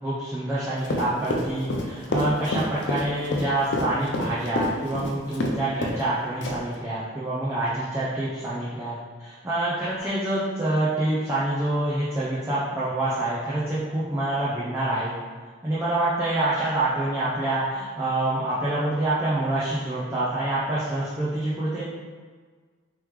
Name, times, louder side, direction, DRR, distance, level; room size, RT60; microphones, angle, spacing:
voice 1, 0.0-15.1 15.6-21.8, right 1 dB, 15° right, -9 dB, 0.5 m, -26 dB
Run, 0.8-5.6 5.8-6.0 6.4-6.8, left 1 dB, 65° left, 0.5 m, -27 dB
3.5 x 3.1 x 3.2 m, 1.5 s
head